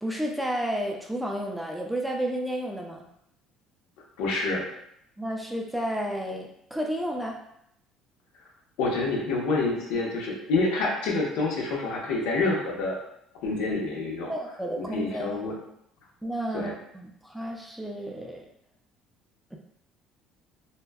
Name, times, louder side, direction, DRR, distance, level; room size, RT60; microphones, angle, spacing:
voice 1, 0.0-3.0 5.2-7.4 14.3-15.4 16.2-18.4 19.5-19.6, right 1 dB, ahead, 0 dB, 0.3 m, -31 dB
voice 2, 4.2-4.6 8.8-13.0 13.4-14.3 14.8-15.5 16.5-16.7, left 3 dB, 90° left, -2 dB, 0.7 m, -27 dB
2.6 x 2.1 x 2.2 m, 0.76 s
cardioid pair, 150°, 0 cm